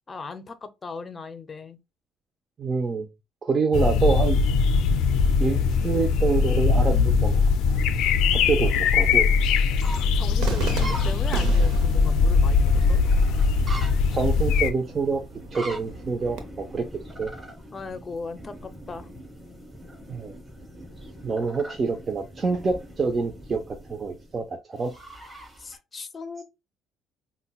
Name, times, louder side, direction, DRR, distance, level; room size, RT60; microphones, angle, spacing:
voice 1, 0.1-1.8 10.1-13.0 17.7-19.1 25.6-26.4, left 4 dB, 30° left, 0.6 m, -38 dB
voice 2, 2.6-3.1 3.4-4.4 5.4-7.4 7.7-7.8 8.3-9.3 14.1-15.2 15.5-16.9 17.2-17.3 20.1-20.3 21.2-24.9, right 4 dB, 35° right, 0.5 m, -26 dB
sound 1, 3.7-14.7, left 5 dB, 80° left, 0.4 m, -21 dB
sound 2, 7.7-25.8, equal, 15° right, 2.3 m, -42 dB
Cheering / Fireworks, 10.4-16.4, right 3 dB, 85° right, 0.7 m, -35 dB
5.3 x 2.2 x 2.3 m
cardioid pair, 90°, 0 cm